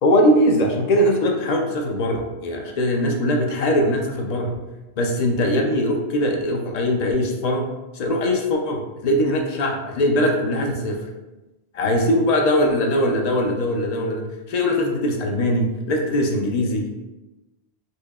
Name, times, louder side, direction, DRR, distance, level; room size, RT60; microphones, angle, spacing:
voice 1, 0.0-4.6 5.0-7.7 7.9-11.0 11.7-16.9, left 1 dB, 60° left, 1 dB, 0.4 m, -21 dB
4.3 x 2.7 x 2.3 m, 1.0 s
omnidirectional pair, 1.2 m